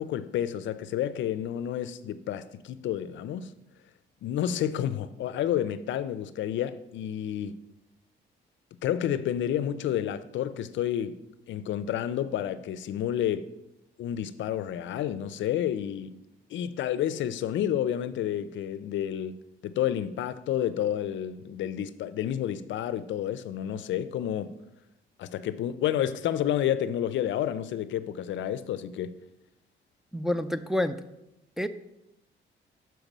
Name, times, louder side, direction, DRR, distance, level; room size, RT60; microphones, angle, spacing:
voice 1, 0.0-3.5 4.2-7.5 8.8-11.2 11.5-13.5 14.0-16.2 16.5-19.4 19.6-24.5 25.2-29.1, left 10 dB, 70° left, 0.5 m, -30 dB
voice 2, 30.1-31.0 31.6-31.7, left 1 dB, ahead, 0.4 m, -28 dB
6.6 x 4.6 x 6.0 m
cardioid pair, 90°, 20 cm